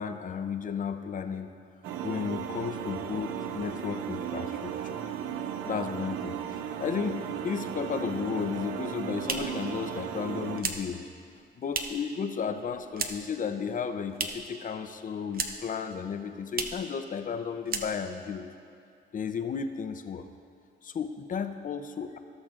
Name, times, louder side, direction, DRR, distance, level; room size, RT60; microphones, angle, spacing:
voice 1, 0.0-1.5 2.0-5.0 5.6-11.1 11.6-18.5 19.1-20.3 20.8-22.2, left 6 dB, 40° left, 8 dB, 0.6 m, -34 dB
sound 1, 1.8-10.6, right 9 dB, 90° right, 0.5 m, -35 dB
sound 2, 8.8-12.2 12.4-13.4 13.7-14.6 14.9-15.8 16.1-16.2 16.5-16.9 17.2-17.4 17.6-18.3, right 5 dB, 50° right, 0.7 m, -35 dB
17.5 x 6.2 x 2.5 m, 2.4 s
cardioid pair, 90°, 20 cm